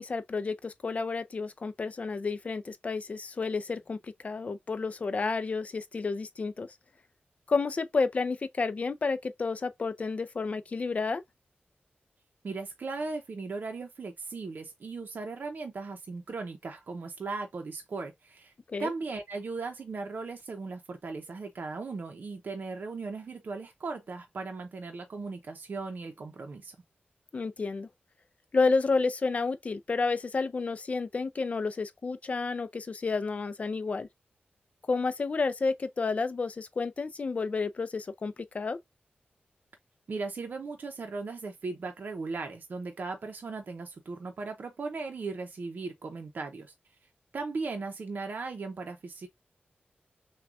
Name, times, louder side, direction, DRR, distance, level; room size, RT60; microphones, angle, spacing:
voice 1, 0.0-4.0 4.2-6.7 7.5-11.2 18.7-18.9 27.3-27.9 28.5-34.1 34.9-38.8, left 4 dB, 40° left, 0.4 m, -30 dB
voice 2, 12.4-18.5 18.8-26.8 40.1-46.7 47.3-49.3, right 3 dB, 55° right, 0.6 m, -37 dB
6.0 x 2.3 x 2.5 m
wide cardioid pair, 165°, 4 cm